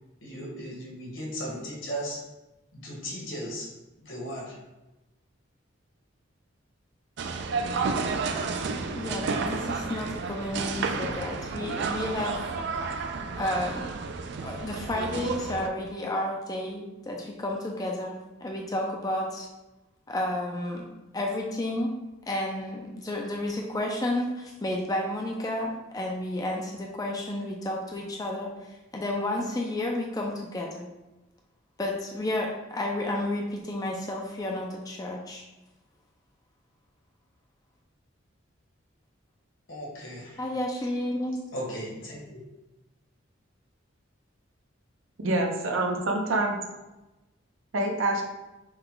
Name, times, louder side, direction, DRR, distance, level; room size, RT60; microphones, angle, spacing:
voice 1, 0.2-2.2 2.7-3.7 4.0-4.6 39.7-40.4 41.5-42.4, equal, 75° left, -4 dB, 1.5 m, -36 dB
sound 1, 7.2-15.7, right 4 dB, 60° right, 0.4 m, -31 dB
voice 2, 9.0-12.5 13.4-13.9 14.4-19.5 20.1-20.8 21.1-21.9 22.3-30.9 31.8-35.4 40.4-41.4, left 1 dB, 20° left, 0 dB, 0.4 m, -31 dB
voice 3, 45.2-46.6 47.7-48.2, right 2 dB, 75° right, 1 dB, 0.8 m, -26 dB
5.5 x 2.2 x 3.8 m, 1.0 s
head